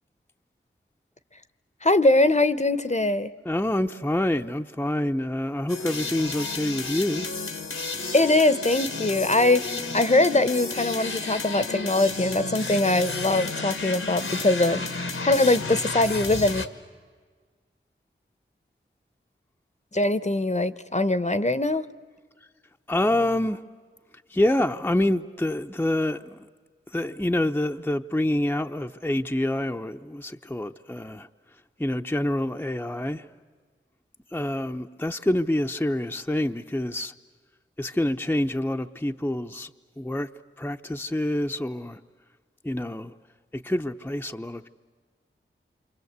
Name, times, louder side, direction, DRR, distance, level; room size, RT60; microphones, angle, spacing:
voice 1, 1.8-3.3 8.1-16.7 19.9-21.8, left 2 dB, 35° left, 0.9 m, -22 dB
voice 2, 3.4-7.3 22.9-23.6 24.3-26.5 26.9-31.3 31.8-33.3 34.3-37.1 37.8-39.7 40.0-40.3 40.6-42.0 42.6-43.1 43.5-44.7, left 1 dB, 10° left, 0.8 m, -27 dB
sound 1, 5.7-16.7, left 3 dB, 85° left, 1.6 m, -32 dB
28.0 x 25.0 x 8.1 m
cardioid pair, 40°, 21 cm